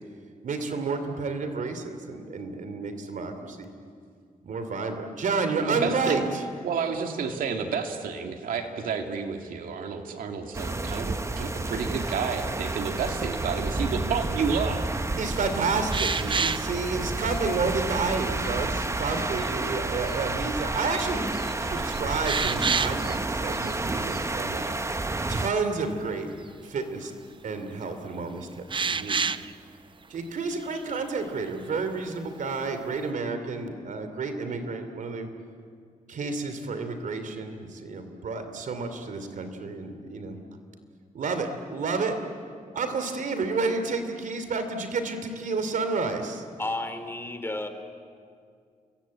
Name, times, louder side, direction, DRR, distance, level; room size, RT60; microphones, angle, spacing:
voice 1, 0.4-3.7 4.4-6.4 15.2-21.2 21.6-24.8 25.3-26.3 26.6-27.1 27.4-29.3 30.1-35.3 36.1-40.4 41.1-42.2 42.7-46.4, right 4 dB, 70° right, 8 dB, 3.2 m, -30 dB
voice 2, 5.6-6.2 6.6-14.9, right 5 dB, 90° right, 4 dB, 2.3 m, -30 dB
sound 1, 10.5-25.5, right 2 dB, 20° right, 1.1 m, -30 dB
sound 2, 15.9-16.7 17.4-17.5 18.0-18.5 19.0-19.5 20.1-20.2 20.6-21.1 21.3-23.2 23.5-23.7 24.1-24.2 28.7-29.5 30.5-31.1, right 5 dB, 35° right, 0.7 m, -29 dB
voice 3, 46.6-47.7, left 2 dB, 15° left, 8 dB, 3.1 m, -32 dB
29.5 x 22.5 x 8.7 m, 2.2 s
cardioid pair, 85°, 14 cm